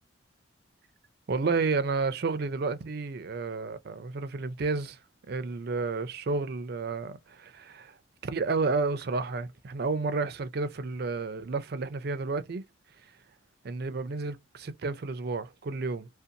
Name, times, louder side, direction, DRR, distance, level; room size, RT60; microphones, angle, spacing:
voice 1, 1.3-5.0 5.3-7.9 8.2-12.6 13.6-16.1, right 4 dB, 55° right, 0.4 m, -31 dB
2.5 x 2.2 x 2.7 m
head